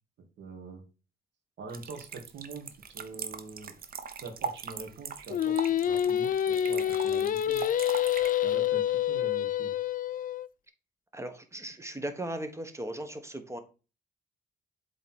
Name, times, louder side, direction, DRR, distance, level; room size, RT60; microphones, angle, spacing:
voice 1, 0.4-0.8 1.6-2.7 2.9-3.7 4.2-7.7 8.4-9.7, right 3 dB, 70° right, 6 dB, 2.0 m, -44 dB
sound 1, 1.7-8.3, right 6 dB, 50° right, 1.0 m, -40 dB
Singing, 5.3-10.5, left 10 dB, 45° left, 0.4 m, -27 dB
voice 2, 11.1-13.6, right 1 dB, 15° right, 9 dB, 1.3 m, -37 dB
8.0 x 3.9 x 4.4 m, 0.32 s
cardioid pair, 95°, 19 cm